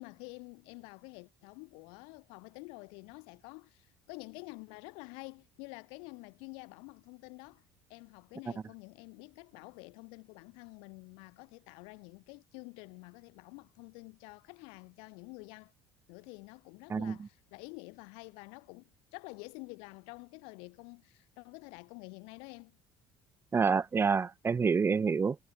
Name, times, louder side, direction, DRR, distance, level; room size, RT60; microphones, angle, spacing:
voice 1, 0.0-7.6 7.9-15.7 16.1-22.8, left 33 dB, 80° left, 7.3 m, -49 dB
voice 2, 16.9-17.3 23.5-25.4, right 5 dB, 25° right, 1.3 m, -28 dB
supercardioid pair, 95°, 9 cm